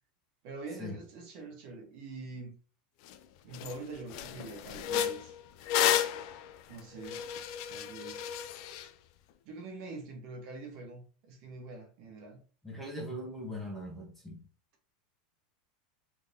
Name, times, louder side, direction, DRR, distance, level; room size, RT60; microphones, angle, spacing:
voice 1, 0.4-2.5 3.4-5.3 6.7-7.3 7.7-8.5 9.4-12.4, right 3 dB, 50° right, 1.3 m, -45 dB
sound 1, 3.1-3.2 3.5-3.8 4.1-8.9, left 10 dB, 55° left, 0.4 m, -32 dB
voice 2, 12.6-14.4, equal, 5° left, 1.0 m, -40 dB
3.7 x 3.3 x 2.7 m
supercardioid pair, 155°, 4 cm